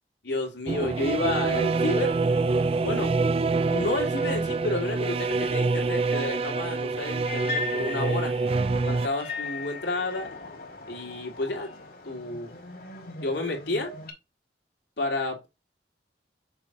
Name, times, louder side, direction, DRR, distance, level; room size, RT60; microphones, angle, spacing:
voice 1, 0.2-2.2 2.8-3.1 3.7-8.3 8.8-10.3 10.9-11.7 12.0-12.6 13.2-13.9 15.0-15.5, left 2 dB, 80° left, 2.4 m, -30 dB
sound 1, 0.7-9.1, right 3 dB, 35° right, 0.3 m, -26 dB
sound 2, 7.3-14.1, left 4 dB, 55° left, 2.0 m, -38 dB
6.7 x 4.5 x 3.7 m
head